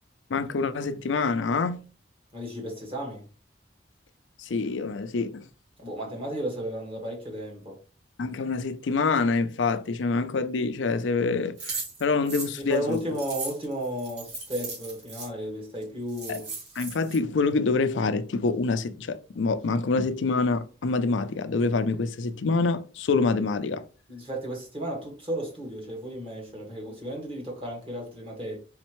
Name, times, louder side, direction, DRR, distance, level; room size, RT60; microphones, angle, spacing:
voice 1, 0.3-1.8 4.4-5.5 8.2-13.0 16.3-16.4 16.8-23.8, left 4 dB, 80° left, 0.5 m, -26 dB
voice 2, 2.3-3.2 5.8-7.8 12.7-16.5 24.1-28.6, equal, 30° right, 1.6 m, -34 dB
sound 1, 11.6-15.3 15.8-15.9 16.1-17.2, right 3 dB, 65° right, 2.2 m, -37 dB
4.2 x 4.0 x 3.1 m
head